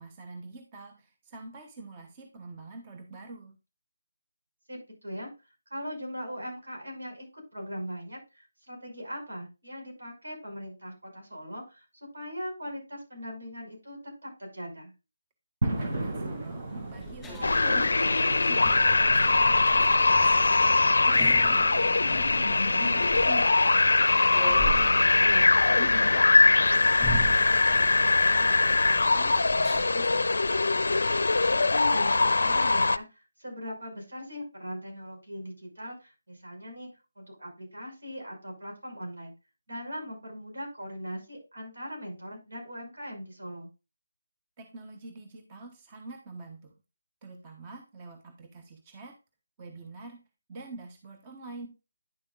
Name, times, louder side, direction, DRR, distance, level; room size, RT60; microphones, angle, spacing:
voice 1, 0.0-3.6 15.6-18.7 19.1-20.3 20.8-23.6 24.4-25.3 25.7-30.4 44.6-46.8 47.2-49.2 49.6-50.2 50.5-51.7, right 3 dB, 25° right, 4 dB, 1.1 m, -45 dB
voice 2, 4.7-5.3 5.7-11.8 12.1-14.9 24.5-25.5 31.5-36.9 37.2-39.3 39.7-43.7, equal, 75° right, 0 dB, 5.8 m, -40 dB
sound 1, 15.6-28.5, right 2 dB, 45° right, 2.1 m, -39 dB
sound 2, 15.8-29.9, right 1 dB, 5° left, 2.9 m, -40 dB
sound 3, 17.4-33.0, left 3 dB, 70° left, 0.5 m, -22 dB
10.0 x 7.4 x 2.4 m, 0.27 s
figure-of-eight pair, 155°, 0 cm